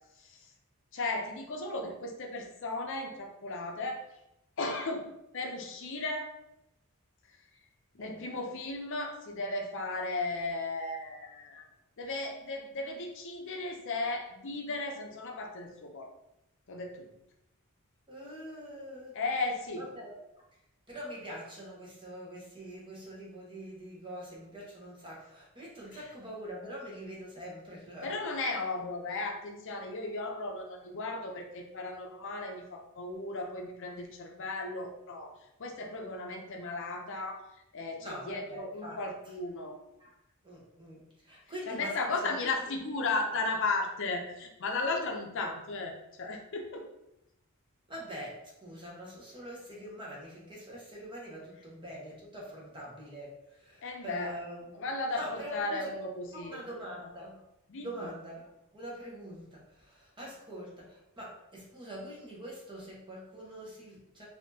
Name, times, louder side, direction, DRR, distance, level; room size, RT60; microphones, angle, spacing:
voice 1, 0.9-4.0 4.6-5.1 5.3-6.3 7.9-11.6 12.0-16.1 16.7-17.1 19.1-19.9 25.9-26.0 28.0-35.3 35.6-37.4 37.7-39.8 41.7-46.9 53.8-54.3 54.7-56.6 57.0-57.1 57.7-58.1, left 3 dB, 60° left, 2 dB, 0.6 m, -35 dB
voice 2, 18.1-19.2 19.8-20.2 20.9-28.1 36.3-36.4 38.0-39.0 40.0-40.1 40.4-42.5 47.9-54.7 55.1-55.9 56.3-57.4 57.8-64.2, equal, 20° right, -4 dB, 1.1 m, -44 dB
4.2 x 2.7 x 2.7 m, 0.85 s
head